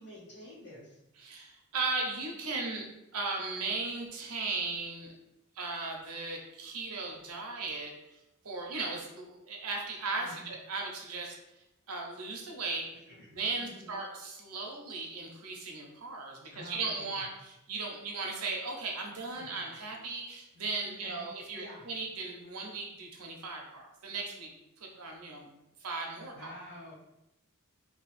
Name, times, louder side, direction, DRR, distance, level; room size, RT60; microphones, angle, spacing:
voice 1, 0.0-1.0 10.2-10.5 13.1-14.0 16.5-17.2 19.3-19.8 20.8-21.8 26.3-26.9, left 1 dB, 60° left, -9 dB, 0.8 m, -49 dB
voice 2, 1.2-2.9 3.1-5.1 5.5-8.2 8.4-11.4 11.9-12.9 13.3-25.5 25.8-26.5, right 3 dB, 85° right, 0 dB, 0.8 m, -37 dB
2.9 x 2.3 x 4.1 m, 0.90 s
head